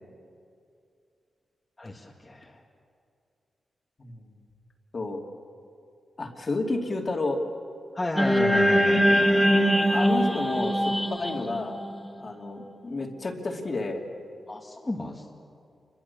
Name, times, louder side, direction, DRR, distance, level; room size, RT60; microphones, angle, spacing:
voice 1, 1.8-2.6 7.9-9.5 14.5-15.3, left 2 dB, 20° left, -3 dB, 2.0 m, -34 dB
voice 2, 4.0-4.3 4.9-5.2 6.2-7.4 9.9-11.7 12.2-14.0, left 2 dB, 35° left, 1 dB, 2.8 m, -31 dB
sound 1, 8.2-12.5, equal, ahead, 1.7 m, -22 dB
28.5 x 23.0 x 7.0 m, 2.4 s
wide cardioid pair, 120°, 0 cm